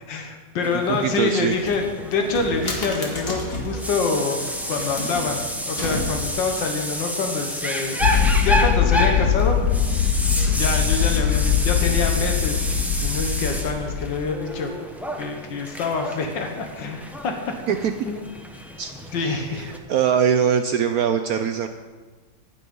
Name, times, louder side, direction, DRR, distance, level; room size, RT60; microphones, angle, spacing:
voice 1, 0.1-8.0 8.4-9.6 10.3-12.6 13.0-14.7 15.2-17.3 18.0-18.3 19.1-19.7, left 4 dB, 85° left, 4 dB, 1.8 m, -26 dB
sound 1, 0.6-19.8, equal, ahead, 0.6 m, -30 dB
voice 2, 1.0-1.5 17.7-17.9 18.8-18.9 19.2-21.7, right 8 dB, 70° right, 8 dB, 0.9 m, -22 dB
sound 2, 1.5-3.8 4.5-6.5, left 1 dB, 35° left, 1.9 m, -32 dB
sound 3, 8.0-14.2, left 8 dB, 70° left, 1.3 m, -21 dB
18.0 x 6.1 x 5.3 m, 1.3 s
omnidirectional pair, 1.9 m